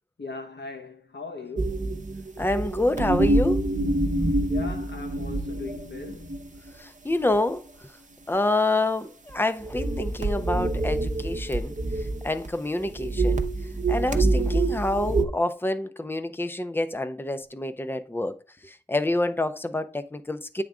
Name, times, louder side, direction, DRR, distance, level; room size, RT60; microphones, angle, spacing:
voice 1, 0.2-2.0 4.5-6.5, left 3 dB, 80° left, 1.1 m, -39 dB
sound 1, 1.6-6.7 7.2-7.4 9.3-9.4 9.6-12.5 12.8-15.2, right 2 dB, 45° right, 0.8 m, -26 dB
voice 2, 2.4-3.6 6.8-7.6 8.3-11.8 12.2-13.4 13.9-18.3 18.6-20.6, left 2 dB, 10° left, 0.6 m, -27 dB
9.1 x 3.7 x 3.5 m
wide cardioid pair, 50°, 18 cm